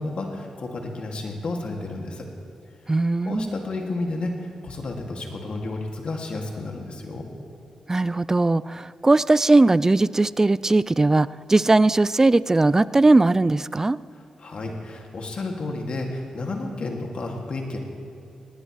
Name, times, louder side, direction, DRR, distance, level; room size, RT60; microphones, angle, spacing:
voice 1, 0.0-2.3 3.2-7.3 14.4-17.8, left 2 dB, 60° left, 1 dB, 2.3 m, -31 dB
voice 2, 2.9-3.5 7.9-14.0, right 2 dB, 25° right, 18 dB, 0.4 m, -19 dB
18.5 x 18.5 x 3.2 m, 2.6 s
supercardioid pair, 50°, 2 cm